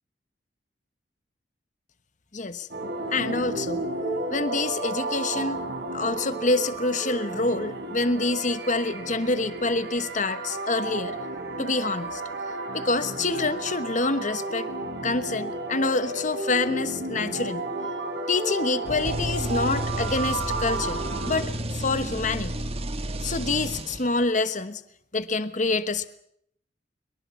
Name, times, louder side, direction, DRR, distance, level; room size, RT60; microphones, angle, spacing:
voice 1, 2.3-2.7 3.1-3.8 4.3-5.6 5.9-11.2 11.6-12.2 12.7-14.7 15.0-17.6 18.3-22.6 23.2-24.8 25.1-26.1, left 3 dB, 45° left, 12 dB, 1.2 m, -27 dB
sound 1, 2.7-21.4, right 2 dB, 60° right, 5.5 m, -32 dB
sound 2, 18.9-24.3, right 1 dB, 35° right, 1.5 m, -31 dB
23.5 x 23.0 x 7.3 m, 0.72 s
head